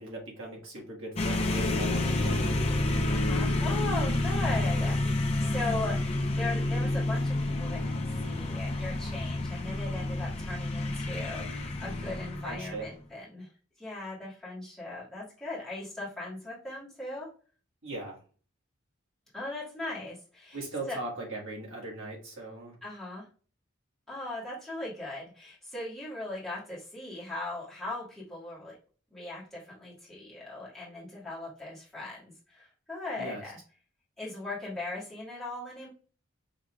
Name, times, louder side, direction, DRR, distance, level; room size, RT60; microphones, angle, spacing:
voice 1, 0.0-2.6 12.4-12.9 17.8-18.2 20.5-22.8 33.2-33.4, right 2 dB, 70° right, -2 dB, 1.6 m, -39 dB
sound 1, 1.2-12.9, left 2 dB, 30° left, 0.6 m, -29 dB
voice 2, 3.1-13.5 13.8-17.3 19.3-21.0 22.8-23.3 24.1-28.8 29.1-33.6 34.2-35.9, left 2 dB, ahead, -8 dB, 1.8 m, -39 dB
4.9 x 3.1 x 2.3 m, 0.39 s
head